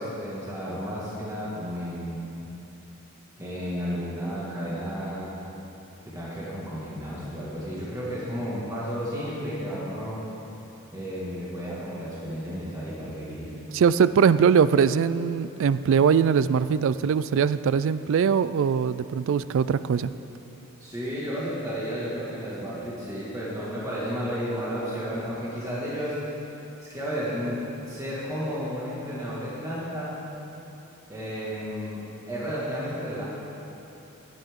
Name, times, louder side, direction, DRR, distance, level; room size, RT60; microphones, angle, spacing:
voice 1, 0.0-2.2 3.4-5.3 6.0-10.2 10.9-13.5 20.8-26.2 26.8-30.2 31.1-33.2, equal, 15° right, -8 dB, 1.9 m, -32 dB
voice 2, 13.7-20.1, right 6 dB, 60° right, 15 dB, 0.3 m, -21 dB
16.5 x 11.5 x 3.7 m, 3.0 s
head